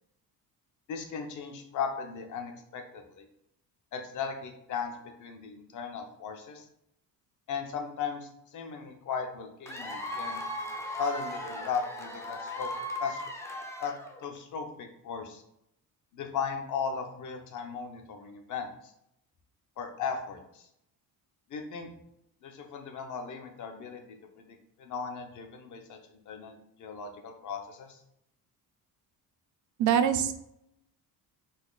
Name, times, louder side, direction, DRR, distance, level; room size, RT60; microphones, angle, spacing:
voice 1, 0.9-3.3 3.9-6.6 7.5-10.4 11.0-12.7 13.0-13.2 13.8-13.9 14.2-15.4 16.1-18.9 19.8-20.6 21.5-21.9 22.4-24.0 24.4-28.0, left 6 dB, 55° left, 5 dB, 0.8 m, -37 dB
Cheering / Applause / Crowd, 9.7-14.4, left 1 dB, 10° left, 0.4 m, -37 dB
voice 2, 29.8-30.3, right 8 dB, 55° right, 9 dB, 0.5 m, -23 dB
4.3 x 2.8 x 3.9 m, 0.78 s
cardioid pair, 170°, 37 cm